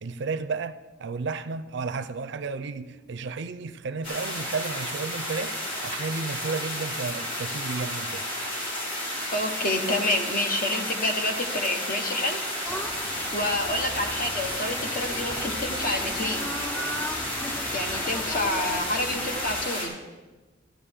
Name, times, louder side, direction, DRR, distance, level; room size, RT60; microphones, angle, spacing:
voice 1, 0.0-5.6 5.8-8.3, right 4 dB, 60° right, 0.4 m, -32 dB
sound 1, 4.0-19.9, left 1 dB, 75° left, 3.5 m, -32 dB
voice 2, 9.3-12.4 13.3-16.5 17.7-19.9, left 1 dB, 45° left, 0.9 m, -28 dB
sound 2, 12.7-19.6, equal, 5° left, 0.5 m, -37 dB
14.0 x 9.1 x 3.4 m
head